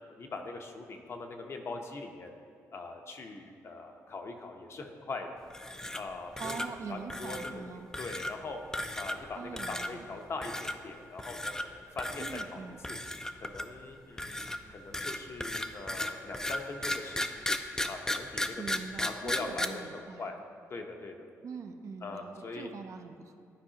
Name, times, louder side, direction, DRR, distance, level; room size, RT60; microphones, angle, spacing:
voice 1, 0.2-2.3 2.7-5.4 5.9-6.6 6.9-8.6 8.9-13.0 13.4-17.3 17.9-18.6 19.0-20.4 20.7-21.3 22.0-22.7, left 3 dB, 45° left, 3 dB, 0.7 m, -42 dB
sound 1, 5.5-6.1 6.4-6.7 7.1-7.5 7.9-8.3 8.7-9.3 9.6-9.9 10.4-10.7 11.2-11.7 12.0-12.5 12.8-13.8 14.2-19.7, left 1 dB, 10° left, 0.4 m, -35 dB
voice 2, 6.4-7.9 9.4-10.1 12.2-12.8 18.6-20.3 21.4-23.4, right 5 dB, 55° right, 6 dB, 0.5 m, -43 dB
11.5 x 4.7 x 2.8 m, 2.4 s
cardioid pair, 95°, 6 cm